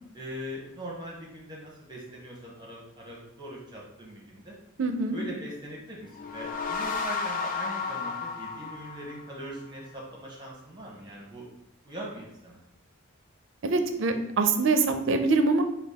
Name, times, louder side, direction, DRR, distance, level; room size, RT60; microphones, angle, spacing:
voice 1, 0.1-4.5 5.1-11.5 11.8-12.6, right 1 dB, 20° right, -3 dB, 0.8 m, -41 dB
voice 2, 4.8-5.2 13.6-15.6, right 3 dB, 60° right, 7 dB, 0.5 m, -24 dB
sound 1, 6.0-9.6, left 4 dB, 40° left, 0.4 m, -33 dB
5.1 x 2.3 x 3.5 m, 0.85 s
head